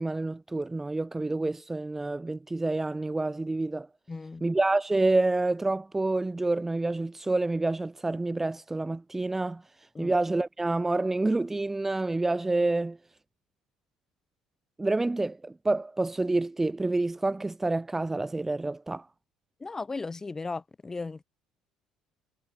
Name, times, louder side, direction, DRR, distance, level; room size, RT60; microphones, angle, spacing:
voice 1, 0.0-3.9 4.4-9.6 10.0-13.0 14.8-19.1, right 2 dB, 15° right, 1.2 m, -28 dB
voice 2, 4.1-4.4 9.9-10.1 19.6-21.2, left 3 dB, 20° left, 6.3 m, -36 dB
figure-of-eight pair, 55°, 2 cm